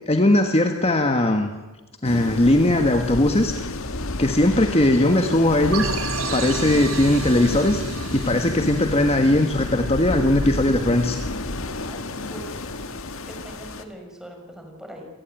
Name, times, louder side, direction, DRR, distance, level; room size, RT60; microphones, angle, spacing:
voice 1, 0.1-1.5 2.0-3.5 4.2-5.9 6.3-7.8 8.1-11.2, left 1 dB, 30° left, 6 dB, 1.5 m, -19 dB
sound 1, 2.0-13.8, left 2 dB, 70° left, 1.9 m, -30 dB
sound 2, 5.7-10.2, right 6 dB, 70° right, 2.8 m, -33 dB
voice 2, 11.8-12.5 13.3-15.1, right 1 dB, 5° right, 2 dB, 5.8 m, -41 dB
28.5 x 18.5 x 9.1 m, 1.2 s
head